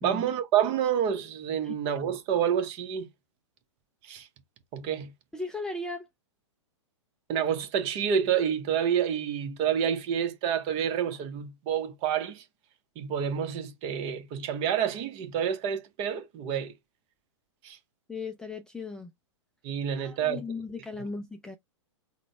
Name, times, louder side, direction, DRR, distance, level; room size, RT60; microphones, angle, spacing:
voice 1, 0.0-3.1 4.0-4.3 4.7-5.1 7.3-12.4 13.0-16.7 17.6-17.8 19.6-20.5, right 8 dB, 35° right, 0.8 m, -28 dB
voice 2, 5.3-6.1 18.1-19.1 20.0-21.6, left 3 dB, 5° left, 0.4 m, -37 dB
3.9 x 2.1 x 4.4 m
figure-of-eight pair, 110°, 16 cm